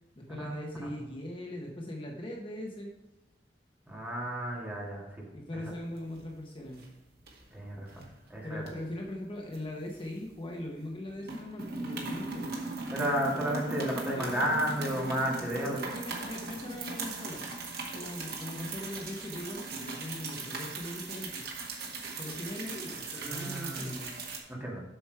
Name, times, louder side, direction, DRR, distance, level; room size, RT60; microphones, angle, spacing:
voice 1, 0.2-2.9 5.3-6.8 8.4-12.5 14.1-14.4 15.5-17.5 17.9-21.4 22.2-24.1, left 1 dB, 30° left, -1 dB, 1.0 m, -40 dB
voice 2, 3.9-5.0 7.5-7.9 8.3-8.6 12.9-15.8 23.2-24.0 24.5-24.8, equal, 10° right, -3 dB, 2.1 m, -32 dB
sound 1, 5.7-6.4 6.7-6.9 7.3-8.1 8.6-10.5 10.8-11.0 11.2-24.4, right 3 dB, 60° right, 1.8 m, -39 dB
7.9 x 6.2 x 4.7 m, 1.0 s
head